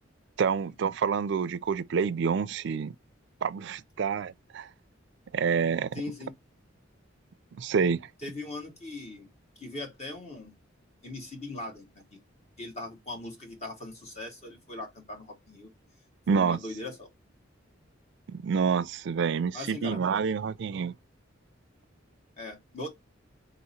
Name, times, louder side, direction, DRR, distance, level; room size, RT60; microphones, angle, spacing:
voice 1, 0.4-2.9 3.4-4.7 5.3-6.0 7.6-8.1 16.3-16.6 18.3-20.9, right 6 dB, 65° right, 0.4 m, -28 dB
voice 2, 5.9-6.3 8.2-9.3 9.6-10.5 11.0-12.2 12.6-15.7 16.3-17.1 19.5-20.0 22.4-22.9, left 2 dB, 35° left, 1.4 m, -40 dB
4.0 x 2.9 x 4.1 m
head